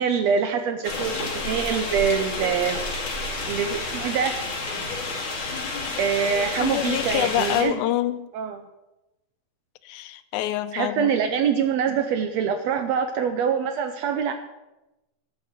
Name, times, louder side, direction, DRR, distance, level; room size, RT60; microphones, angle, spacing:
voice 1, 0.0-2.8 3.5-4.3 6.0-7.8 8.3-8.6 10.7-14.3, right 7 dB, 75° right, 7 dB, 1.6 m, -24 dB
sound 1, 0.8-7.6, left 3 dB, 40° left, 3.0 m, -30 dB
voice 2, 6.6-8.3 9.8-11.1, left 13 dB, 80° left, 12 dB, 2.0 m, -26 dB
12.0 x 5.7 x 7.9 m, 0.98 s
omnidirectional pair, 3.5 m